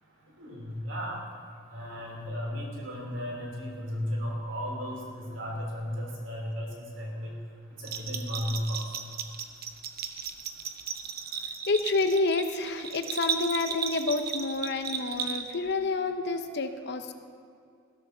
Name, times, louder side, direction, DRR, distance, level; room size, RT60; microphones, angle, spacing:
voice 1, 0.4-1.2 1.7-6.7 7.0-7.3 7.8-8.8, equal, 80° right, -1 dB, 3.3 m, -34 dB
Bell, 7.8-15.7, right 6 dB, 55° right, 0.9 m, -35 dB
voice 2, 11.7-17.1, left 3 dB, 60° left, 8 dB, 0.9 m, -29 dB
15.5 x 13.5 x 4.0 m, 2.3 s
head